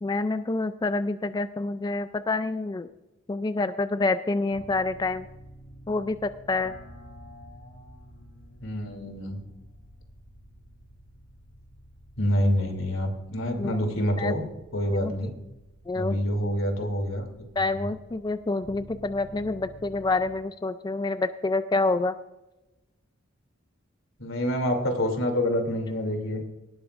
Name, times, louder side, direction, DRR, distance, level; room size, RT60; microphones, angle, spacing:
voice 1, 0.0-2.9 3.3-5.3 5.9-6.7 13.6-13.8 14.2-14.3 14.9-15.1 15.9-16.2 17.6-22.1, left 3 dB, 20° left, 11 dB, 0.3 m, -27 dB
sound 1, 4.5-20.3, equal, 55° left, 2.2 m, -50 dB
voice 2, 8.6-9.4 12.2-14.4 14.7-15.4 15.9-17.4 17.7-17.9 24.2-26.4, equal, 85° left, 4 dB, 2.8 m, -27 dB
18.0 x 13.0 x 2.5 m, 1.0 s
head